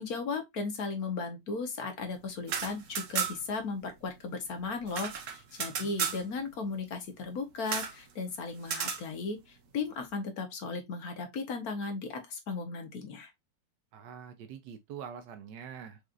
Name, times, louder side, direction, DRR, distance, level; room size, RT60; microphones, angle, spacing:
voice 1, 0.0-13.3, left 4 dB, 60° left, 1.4 m, -36 dB
sound 1, 2.3-3.6 3.9-4.0 4.2-6.2 7.7-8.0 8.6-9.0, right 6 dB, 55° right, 1.0 m, -34 dB
voice 2, 13.9-16.0, right 8 dB, 85° right, 1.3 m, -44 dB
5.0 x 3.1 x 2.4 m
omnidirectional pair, 1.9 m